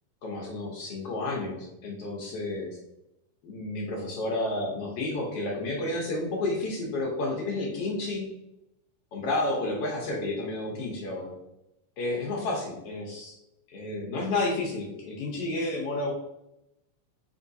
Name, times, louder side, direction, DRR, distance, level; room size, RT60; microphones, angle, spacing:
voice 1, 0.2-2.8 3.4-8.3 9.1-11.3 12.0-13.4 13.7-16.1, left 2 dB, 65° left, -1 dB, 1.6 m, -31 dB
4.7 x 3.5 x 2.6 m, 0.86 s
omnidirectional pair, 3.4 m